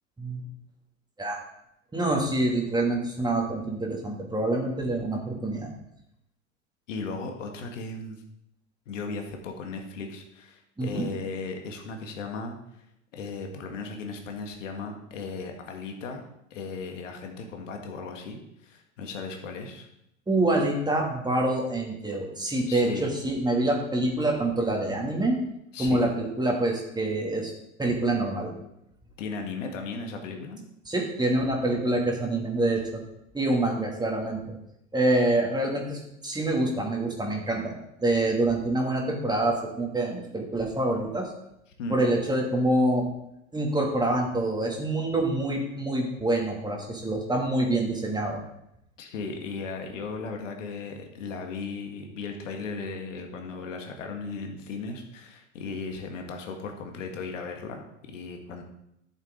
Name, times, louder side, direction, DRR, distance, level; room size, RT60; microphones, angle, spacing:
voice 1, 1.9-5.7 10.8-11.0 20.3-25.4 25.8-27.5 27.8-28.5 30.9-33.0 33.3-34.6 34.9-41.3 41.9-43.1 43.5-48.4, right 2 dB, 10° right, 0 dB, 2.6 m, -26 dB
voice 2, 6.9-8.2 8.9-12.8 13.1-16.2 16.5-19.9 22.6-23.1 25.7-26.1 29.2-30.6 41.8-42.0 49.0-58.6, left 4 dB, 70° left, 3 dB, 1.9 m, -36 dB
12.5 x 7.3 x 3.9 m, 0.81 s
hypercardioid pair, 85°, 39 cm